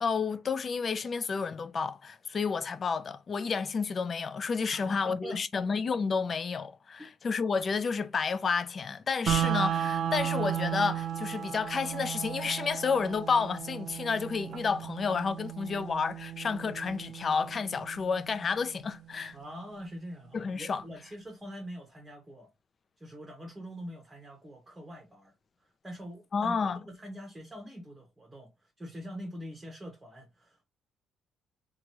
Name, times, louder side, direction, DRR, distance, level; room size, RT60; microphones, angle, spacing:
voice 1, 0.0-19.4 20.3-20.8 26.3-26.8, left 5 dB, 35° left, 0.3 m, -30 dB
voice 2, 4.7-5.6 7.0-7.1 19.3-22.5 23.0-25.3 25.6-30.6, equal, 10° right, 0.8 m, -44 dB
sound 1, 9.3-19.3, right 10 dB, 60° right, 0.4 m, -35 dB
2.9 x 2.3 x 2.8 m
cardioid pair, 120°, 0 cm